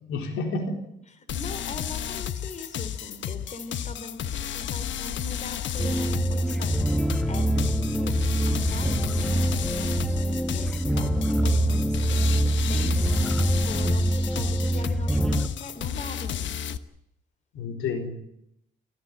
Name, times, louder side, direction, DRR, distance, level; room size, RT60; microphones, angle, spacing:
voice 1, 0.1-0.8 17.5-18.1, left 3 dB, 90° left, 3 dB, 4.3 m, -29 dB
voice 2, 1.2-8.2 8.4-16.6, left 3 dB, 35° left, 10 dB, 3.6 m, -42 dB
sound 1, 1.3-16.8, left 9 dB, 70° left, 1.2 m, -33 dB
sound 2, 5.8-15.5, right 1 dB, ahead, 1.3 m, -24 dB
28.0 x 15.5 x 8.9 m, 0.79 s
cardioid pair, 90°, 20 cm